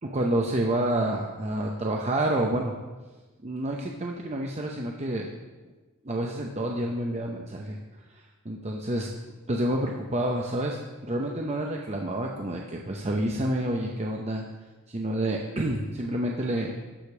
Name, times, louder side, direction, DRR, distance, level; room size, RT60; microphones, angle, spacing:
voice 1, 0.0-2.7 3.4-5.3 6.0-7.8 8.1-9.1 9.5-14.4 14.9-16.7, right 1 dB, 30° right, 0 dB, 0.7 m, -28 dB
13.0 x 5.1 x 6.0 m, 1.2 s
head